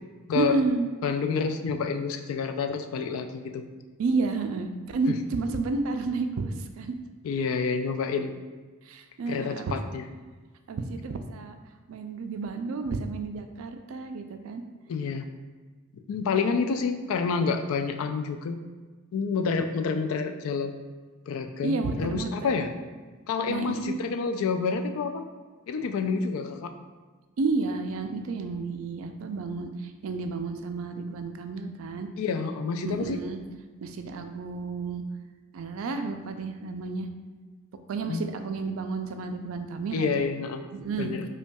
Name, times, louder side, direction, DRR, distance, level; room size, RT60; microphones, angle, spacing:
voice 1, 0.3-0.9 4.0-6.9 8.9-9.8 10.7-11.5 11.9-14.6 21.6-22.6 23.5-24.0 27.4-32.1 32.8-33.4 33.8-35.0 35.5-37.1 37.9-40.3 40.7-41.1, right 3 dB, 70° right, 7 dB, 0.3 m, -31 dB
voice 2, 1.0-3.6 5.1-5.2 7.2-8.3 9.3-10.0 14.9-15.3 16.1-18.6 19.1-20.7 21.3-22.7 23.3-25.2 25.7-26.7 32.2-33.2 38.1-38.2 39.9-40.6 41.0-41.3, left 5 dB, 70° left, 7 dB, 0.3 m, -28 dB
5.3 x 2.3 x 2.2 m, 1.4 s
head